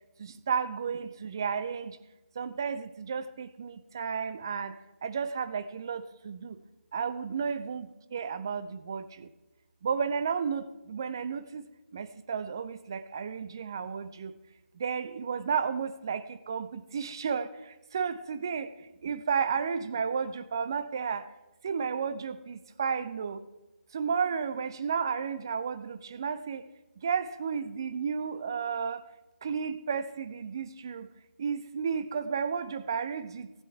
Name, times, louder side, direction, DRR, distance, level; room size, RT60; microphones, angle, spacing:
voice 1, 0.2-2.0 2.4-6.6 6.9-9.3 9.8-14.3 14.7-21.3 21.6-23.5 23.9-26.6 27.0-29.0 29.4-31.1 31.4-33.5, right 6 dB, 20° right, 0.3 m, -33 dB
15.5 x 9.4 x 4.6 m
figure-of-eight pair, 155°, 7 cm